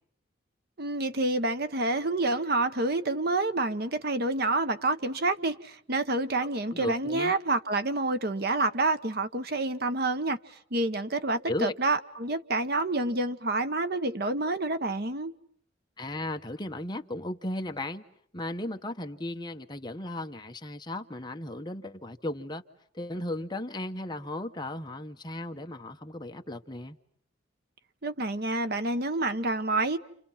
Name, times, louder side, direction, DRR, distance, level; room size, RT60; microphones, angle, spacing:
voice 1, 0.8-15.3 28.0-30.0, right 2 dB, 50° right, 1.2 m, -28 dB
voice 2, 6.4-7.3 11.5-11.7 16.0-18.0 18.3-22.6 22.9-27.0, left 1 dB, 20° left, 1.2 m, -35 dB
30.0 x 28.5 x 5.8 m
head